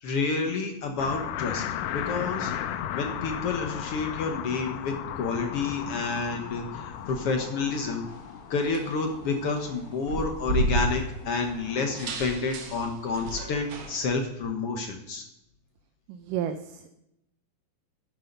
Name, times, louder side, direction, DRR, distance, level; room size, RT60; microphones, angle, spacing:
voice 1, 0.0-1.6 1.9-2.5 2.9-8.1 8.5-15.2, left 4 dB, 60° left, 4 dB, 1.6 m, -29 dB
sound 1, 1.0-12.1, left 10 dB, 85° left, 2.2 m, -36 dB
sound 2, 2.8-14.1, right 2 dB, 55° right, 1.6 m, -36 dB
voice 2, 16.1-17.0, right 9 dB, 80° right, 8 dB, 2.2 m, -33 dB
11.0 x 10.0 x 5.3 m, 0.84 s
omnidirectional pair, 3.9 m